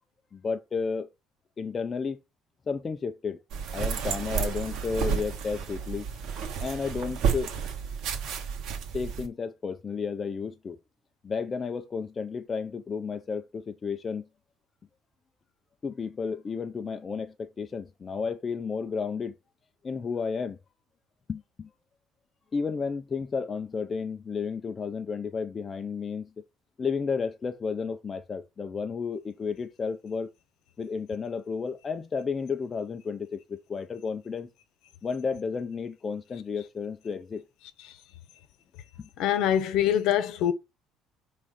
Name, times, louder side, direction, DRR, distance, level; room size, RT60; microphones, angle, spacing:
voice 1, 0.3-1.1 1.6-2.2 2.7-3.4 3.7-6.1 6.6-7.5 8.9-10.8 11.2-14.3 15.8-19.3 19.8-20.6 21.3-21.7 22.5-26.3 26.8-30.3 30.8-34.5 35.0-37.4 39.0-39.1, left 5 dB, 25° left, 0.5 m, -32 dB
sound 1, 3.5-9.3, right 6 dB, 65° right, 1.4 m, -31 dB
voice 2, 39.2-40.5, left 10 dB, 70° left, 0.9 m, -24 dB
4.9 x 3.7 x 5.4 m
cardioid pair, 130°, 0 cm